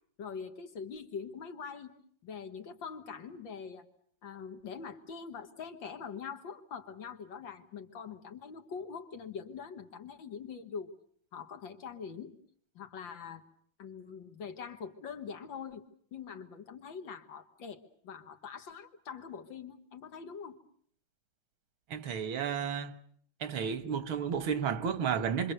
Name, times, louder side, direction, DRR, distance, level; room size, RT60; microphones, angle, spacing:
voice 1, 0.2-1.9 2.2-3.9 4.2-11.0 11.3-12.3 12.8-13.4 13.8-15.8 16.1-20.6, left 6 dB, 65° left, 2.3 m, -43 dB
voice 2, 21.9-23.0 23.4-25.5, right 7 dB, 85° right, 2.1 m, -32 dB
27.0 x 24.5 x 6.8 m
omnidirectional pair, 2.2 m